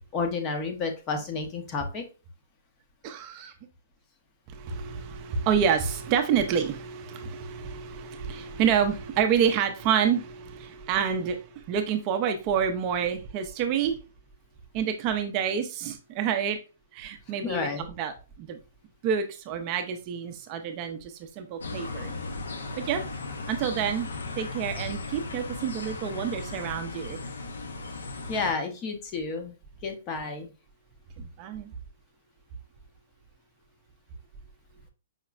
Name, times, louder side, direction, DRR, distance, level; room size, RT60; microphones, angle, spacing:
voice 1, 0.1-2.0 17.4-17.9 28.3-29.6 29.8-30.5, left 4 dB, 25° left, 5 dB, 0.6 m, -31 dB
voice 2, 3.0-3.5 4.5-14.0 14.7-16.6 16.9-17.7 18.0-18.6 19.0-22.1 22.8-23.0 23.5-24.1 24.4-27.2 31.2-31.7, right 7 dB, 30° right, 6 dB, 0.4 m, -28 dB
sound 1, 21.6-28.5, left 3 dB, 90° left, 0.5 m, -36 dB
4.9 x 2.1 x 2.3 m, 0.32 s
hypercardioid pair, 155°, 0 cm